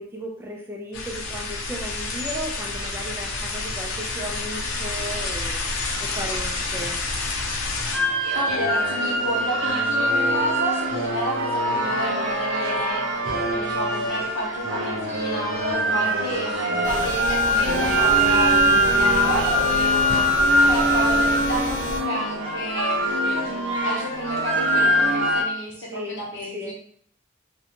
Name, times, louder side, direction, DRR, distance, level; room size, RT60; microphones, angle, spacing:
voice 1, 0.0-5.7 6.0-7.0 18.6-19.0 25.8-26.2 26.5-26.7, equal, 10° right, 0 dB, 0.3 m, -35 dB
sound 1, 0.9-8.0, left 3 dB, 85° left, 0.5 m, -29 dB
sound 2, 7.9-25.4, right 1 dB, 65° right, 0.5 m, -22 dB
voice 2, 8.3-13.1 13.5-26.7, equal, 65° left, -3 dB, 0.9 m, -31 dB
sound 3, 16.8-22.0, equal, 15° left, 1.0 m, -33 dB
2.5 x 2.1 x 2.8 m, 0.62 s
head